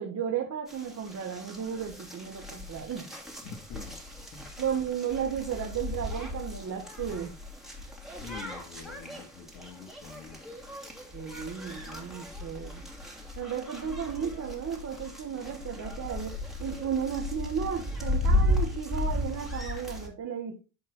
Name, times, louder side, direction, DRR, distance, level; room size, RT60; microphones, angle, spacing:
voice 1, 0.0-3.1 4.6-7.3 11.1-12.7 13.4-20.6, right 8 dB, 40° right, 1 dB, 1.7 m, -34 dB
sound 1, 0.7-20.1, left 1 dB, ahead, 2.7 m, -35 dB
voice 2, 3.4-4.0 4.3-4.4 8.2-10.4, left 6 dB, 75° left, 5 dB, 2.3 m, -45 dB
11.0 x 3.9 x 3.9 m, 0.31 s
supercardioid pair, 70°, 41 cm